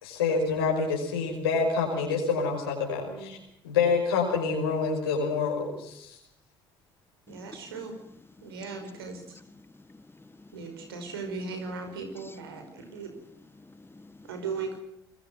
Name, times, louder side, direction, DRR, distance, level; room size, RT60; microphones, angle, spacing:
voice 1, 0.0-3.4 3.6-6.2, left 5 dB, 85° left, -2 dB, 5.6 m, -27 dB
voice 2, 3.0-3.3 7.3-7.9 8.4-9.2 10.5-13.1 14.3-14.8, right 4 dB, 85° right, 6 dB, 5.3 m, -37 dB
voice 3, 9.6-10.6 13.6-14.3, left 2 dB, 20° left, 14 dB, 1.8 m, -52 dB
25.5 x 21.5 x 6.0 m, 0.75 s
hypercardioid pair, 55°, 12 cm